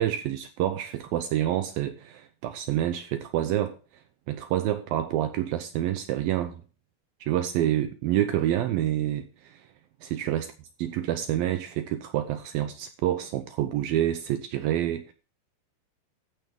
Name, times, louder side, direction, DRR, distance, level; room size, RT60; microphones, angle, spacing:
voice 1, 0.0-3.8 4.3-6.6 7.2-9.6 10.0-10.5 10.8-15.1, right 12 dB, 80° right, 2.2 m, -28 dB
14.5 x 9.1 x 3.6 m
omnidirectional pair, 4.9 m